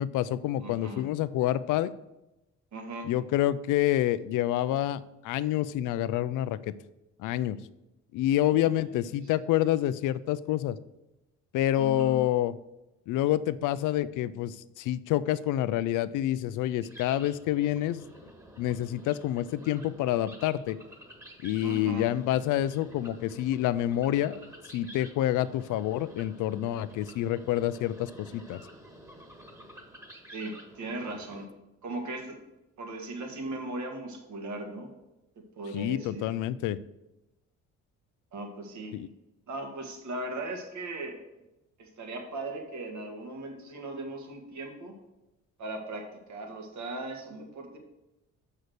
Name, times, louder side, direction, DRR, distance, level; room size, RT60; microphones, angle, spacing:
voice 1, 0.0-1.9 3.0-6.7 7.2-7.6 8.1-10.8 11.5-12.5 13.1-18.0 18.6-20.8 21.4-24.4 24.7-28.6 35.7-36.8 38.9-39.1, left 13 dB, 85° left, 16 dB, 0.5 m, -28 dB
voice 2, 0.6-1.1 2.7-3.1 8.5-8.7 11.8-12.2 21.6-22.1 30.3-31.5 31.8-32.4 32.8-34.9 35.4-36.3 38.3-38.9 39.5-41.2 41.8-44.9 45.6-47.8, right 2 dB, 70° right, 3 dB, 1.9 m, -38 dB
sound 1, 16.8-31.5, equal, 10° right, 1.5 m, -50 dB
6.4 x 5.6 x 6.6 m, 0.95 s
cardioid pair, 90°, 30 cm